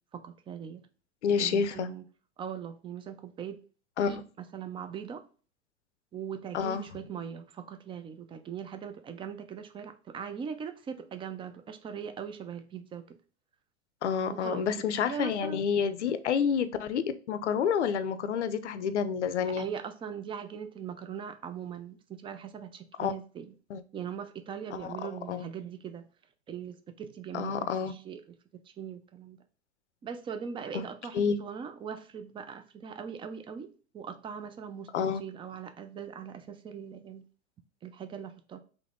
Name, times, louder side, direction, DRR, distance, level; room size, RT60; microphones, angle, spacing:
voice 1, 0.1-0.8 1.4-2.0 2.4-3.6 4.0-5.2 6.1-13.2 14.4-14.7 15.0-15.6 19.5-23.5 23.9-26.1 26.5-29.4 30.0-37.2 37.8-38.6, right 7 dB, 15° right, 0.4 m, -40 dB
voice 2, 1.2-1.9 4.0-4.2 6.5-6.8 14.0-19.7 23.0-23.1 23.7-23.8 24.7-24.9 25.3-25.5 27.3-27.9 30.7-30.8 31.1-31.4 34.9-35.2, left 7 dB, 85° left, 0.6 m, -29 dB
3.8 x 3.1 x 3.6 m
hypercardioid pair, 100°, 34 cm